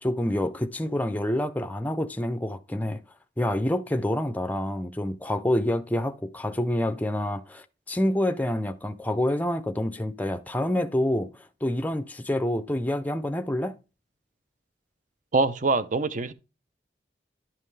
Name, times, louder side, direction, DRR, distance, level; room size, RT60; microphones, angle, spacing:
voice 1, 0.0-3.0 3.4-13.8, left 1 dB, 10° left, 0.5 m, -27 dB
voice 2, 15.3-16.3, right 3 dB, 45° right, 0.6 m, -24 dB
11.5 x 5.6 x 3.2 m
head